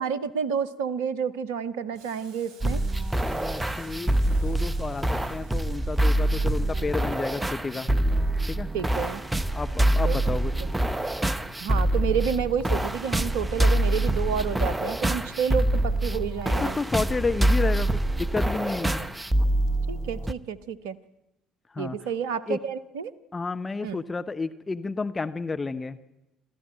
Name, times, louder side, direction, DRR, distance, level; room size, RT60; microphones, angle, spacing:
voice 1, 0.0-2.8 8.7-9.2 10.0-10.2 10.6-10.7 11.6-16.8 18.9-19.1 19.9-21.0 21.8-23.1 23.8-24.0, right 7 dB, 65° right, 18 dB, 0.8 m, -30 dB
Boiling, 1.9-20.4, right 5 dB, 50° right, 5.1 m, -59 dB
sound 1, 2.6-20.3, right 1 dB, 15° right, 0.9 m, -25 dB
voice 2, 3.3-7.9 8.5-8.7 9.5-10.5 16.6-19.1 21.7-22.0 22.5-22.6 23.3-26.0, left 4 dB, 25° left, 9 dB, 0.9 m, -31 dB
28.0 x 13.0 x 9.1 m, 0.93 s
figure-of-eight pair, 50°, 0 cm